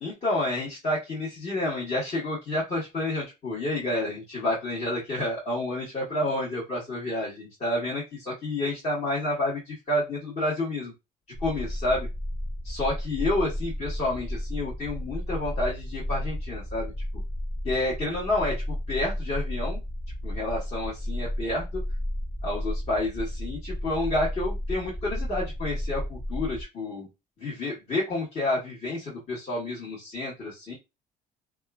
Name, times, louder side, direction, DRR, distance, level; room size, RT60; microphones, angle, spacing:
voice 1, 0.0-10.9 11.4-12.1 12.6-16.9 17.6-19.8 20.2-21.6 22.4-27.1 27.4-30.7, left 2 dB, 40° left, -7 dB, 1.2 m, -29 dB
sound 1, 11.3-26.6, equal, 10° left, 0.4 m, -33 dB
2.8 x 2.3 x 2.3 m, 0.24 s
cardioid pair, 110°, 17 cm